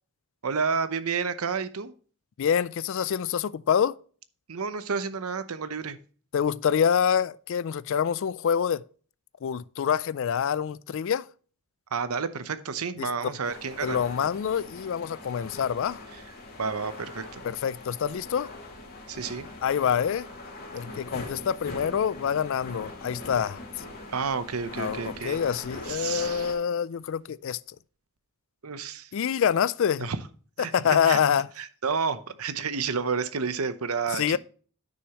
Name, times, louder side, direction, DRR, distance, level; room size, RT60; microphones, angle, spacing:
voice 1, 0.4-1.9 4.5-6.0 11.9-14.0 16.1-16.2 16.6-17.4 19.1-19.5 24.1-25.4 25.8-26.5 28.6-29.1 30.0-30.2 30.6-31.2 31.6-34.4, right 5 dB, 90° right, 0.8 m, -30 dB
voice 2, 2.4-4.0 6.3-8.8 9.4-11.3 13.0-13.1 13.8-16.0 17.4-18.5 19.6-20.3 20.7-23.6 24.8-27.6 29.1-30.1 30.6-31.5 34.1-34.4, left 8 dB, 65° left, 0.3 m, -26 dB
sound 1, 13.4-26.5, left 2 dB, 45° left, 2.3 m, -42 dB
9.5 x 6.4 x 2.9 m
head